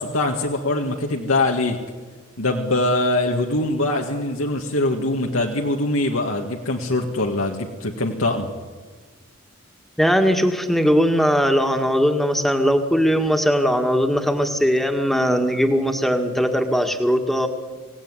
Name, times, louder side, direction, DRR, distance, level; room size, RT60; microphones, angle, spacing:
voice 1, 0.0-1.8 2.4-8.5, left 2 dB, 85° left, 1 dB, 1.9 m, -23 dB
voice 2, 10.0-17.5, equal, ahead, 5 dB, 1.9 m, -19 dB
26.0 x 17.0 x 9.8 m, 1.4 s
head